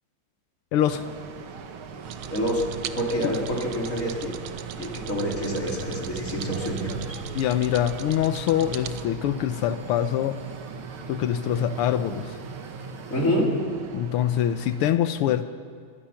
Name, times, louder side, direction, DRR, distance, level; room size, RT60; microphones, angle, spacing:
voice 1, 0.7-1.0 3.2-3.4 7.3-10.4 11.1-12.4 13.9-15.4, left 11 dB, 85° left, 11 dB, 1.6 m, -24 dB
sound 1, 0.9-14.9, right 5 dB, 75° right, 2.1 m, -40 dB
sound 2, 2.0-9.1, right 9 dB, 90° right, 1.8 m, -39 dB
voice 2, 2.3-2.7 2.9-4.3 4.8-7.0 13.1-13.6, equal, 35° left, -2 dB, 3.8 m, -27 dB
sound 3, 5.4-13.3, right 2 dB, 5° left, 5.2 m, -43 dB
24.5 x 18.5 x 5.8 m, 2.1 s
omnidirectional pair, 2.4 m